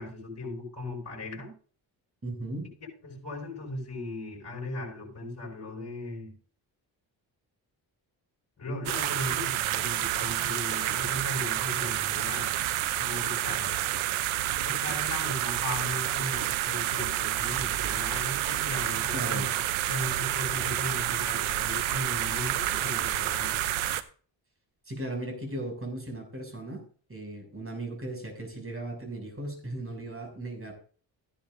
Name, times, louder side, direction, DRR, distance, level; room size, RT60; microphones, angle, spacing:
voice 1, 0.0-1.5 3.0-6.3 8.6-12.5 13.0-13.7 14.6-19.5 19.9-23.7, left 2 dB, 35° left, 6.2 m, -37 dB
voice 2, 2.2-2.7 19.1-19.5 24.9-26.8 27.1-30.7, right 1 dB, 30° right, 6.7 m, -37 dB
sound 1, 8.9-24.0, right 13 dB, 90° right, 0.8 m, -29 dB
15.0 x 11.0 x 2.7 m
supercardioid pair, 60°, 46 cm